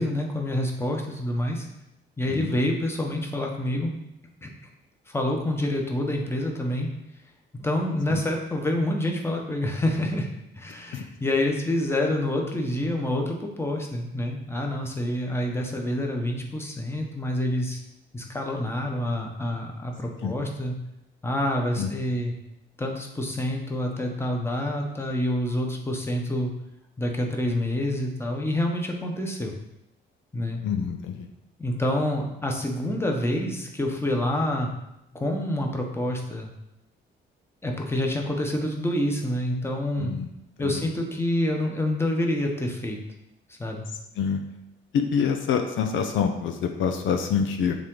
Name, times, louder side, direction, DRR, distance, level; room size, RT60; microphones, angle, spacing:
voice 1, 0.0-1.7 2.2-3.9 4.4-4.5 5.1-6.9 7.5-10.3 10.5-17.8 18.1-20.8 21.2-22.3 22.8-26.5 27.0-29.5 30.3-30.6 31.6-34.7 35.1-36.5 37.6-40.1 40.6-43.0 43.6-43.9, left 1 dB, 10° left, 1 dB, 1.1 m, -27 dB
voice 2, 30.6-31.3 40.0-40.3 40.6-40.7 44.2-44.4 44.9-47.8, left 7 dB, 75° left, 5 dB, 0.6 m, -26 dB
7.3 x 3.7 x 3.9 m, 0.86 s
cardioid pair, 90°, 20 cm